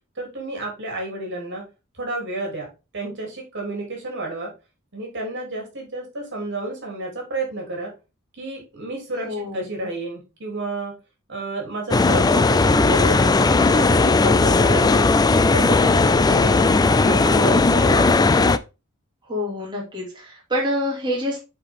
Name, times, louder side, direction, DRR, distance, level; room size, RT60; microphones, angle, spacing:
voice 1, 0.2-1.6 1.9-4.5 4.9-7.9 8.4-10.9 11.3-13.4 13.7-15.2 15.4-16.5 17.0-18.1, right 2 dB, 60° right, 0 dB, 3.1 m, -30 dB
voice 2, 9.2-9.7 16.4-16.8 19.3-21.4, left 1 dB, 20° right, -4 dB, 2.7 m, -27 dB
sound 1, 11.9-18.6, left 3 dB, 20° left, 0.3 m, -17 dB
7.7 x 4.4 x 3.6 m, 0.28 s
head